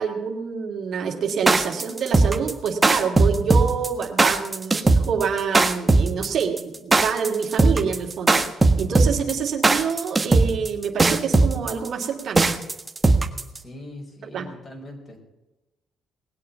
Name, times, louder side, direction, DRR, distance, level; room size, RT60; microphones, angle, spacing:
voice 1, 0.0-8.4 8.8-12.5 14.2-14.5, right 6 dB, 65° right, 3 dB, 2.5 m, -27 dB
sound 1, 1.3-13.6, right 3 dB, 20° right, 1.4 m, -18 dB
voice 2, 13.5-15.2, left 1 dB, 40° left, 1 dB, 5.4 m, -41 dB
19.5 x 8.5 x 7.2 m, 1.0 s
cardioid pair, 90°, 0 cm